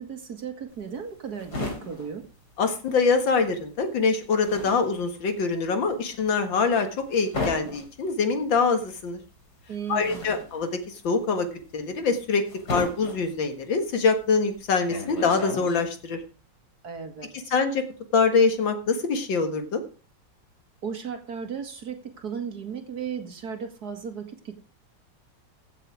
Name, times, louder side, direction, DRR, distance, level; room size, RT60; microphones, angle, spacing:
voice 1, 0.0-2.2 9.7-10.4 16.8-17.5 20.8-24.5, right 7 dB, 55° right, 5 dB, 2.3 m, -35 dB
sound 1, 0.7-3.2 3.5-16.1, left 2 dB, 60° left, 3.6 m, -36 dB
voice 2, 2.6-9.2 9.9-10.7 11.0-11.5 11.7-16.2 17.5-17.8 18.1-19.8, left 4 dB, 85° left, 7 dB, 2.4 m, -24 dB
16.0 x 6.8 x 4.8 m, 0.37 s
omnidirectional pair, 2.0 m